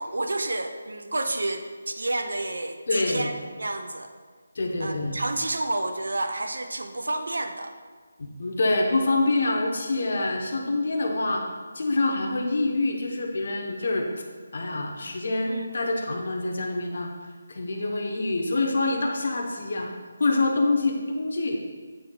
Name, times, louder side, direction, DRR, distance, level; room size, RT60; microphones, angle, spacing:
voice 1, 0.0-4.1 4.8-7.7 15.4-15.7, right 2 dB, 85° right, 7 dB, 0.5 m, -30 dB
voice 2, 2.9-3.3 4.5-5.2 8.4-11.4 11.7-14.1 14.5-17.1 17.5-19.9 20.2-21.6, left 2 dB, 40° left, 1 dB, 0.8 m, -26 dB
7.8 x 3.4 x 3.8 m, 1.5 s
figure-of-eight pair, 180°, 0 cm